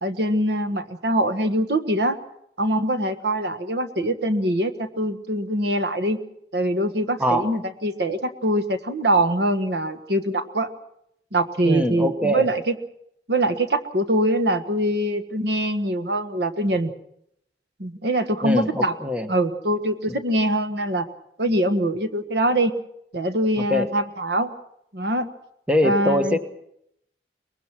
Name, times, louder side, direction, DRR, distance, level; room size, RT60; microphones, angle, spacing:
voice 1, 0.0-2.2 2.6-6.2 6.5-10.7 11.3-12.7 13.3-16.9 17.8-18.9 19.3-21.1 21.4-22.7 23.1-24.5 24.9-25.3 25.8-26.4, right 1 dB, 65° right, 10 dB, 1.5 m, -23 dB
voice 2, 11.6-12.5 18.4-19.3 23.7-23.9 25.7-26.4, left 1 dB, 5° right, 7 dB, 1.3 m, -22 dB
23.5 x 21.0 x 6.1 m, 0.75 s
head